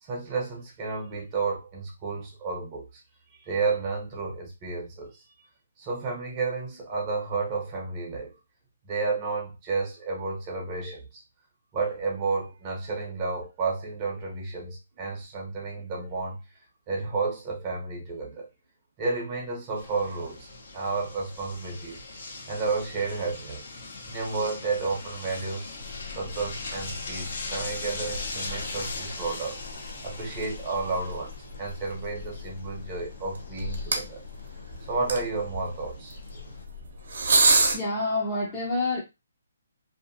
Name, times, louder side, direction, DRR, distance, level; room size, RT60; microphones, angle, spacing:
voice 1, 0.0-3.0 3.4-5.2 5.8-8.3 8.8-11.2 11.7-16.4 16.9-18.5 19.0-20.5 20.7-22.0 22.5-23.6 24.0-25.7 26.1-29.6 30.0-31.3 31.6-34.2 34.8-36.2, right 4 dB, 25° right, 0.7 m, -31 dB
sound 1, 19.8-36.6, left 3 dB, 55° left, 0.8 m, -40 dB
sound 2, 25.8-37.8, right 2 dB, 70° right, 0.8 m, -31 dB
voice 2, 37.4-39.0, left 2 dB, 15° left, 0.7 m, -28 dB
2.7 x 2.4 x 2.5 m
hypercardioid pair, 160°, 0 cm